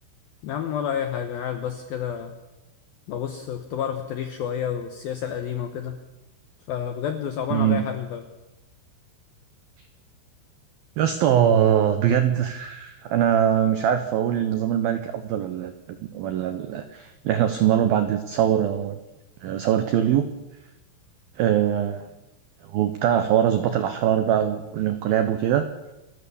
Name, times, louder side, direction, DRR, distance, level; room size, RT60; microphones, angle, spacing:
voice 1, 0.4-2.3 3.1-6.0 6.7-8.2, left 8 dB, 75° left, 7 dB, 2.2 m, -29 dB
voice 2, 7.5-7.8 11.0-19.0 19.4-20.2 21.4-22.1 22.6-25.7, right 10 dB, 85° right, 9 dB, 2.1 m, -22 dB
28.5 x 14.0 x 7.1 m, 0.99 s
omnidirectional pair, 5.8 m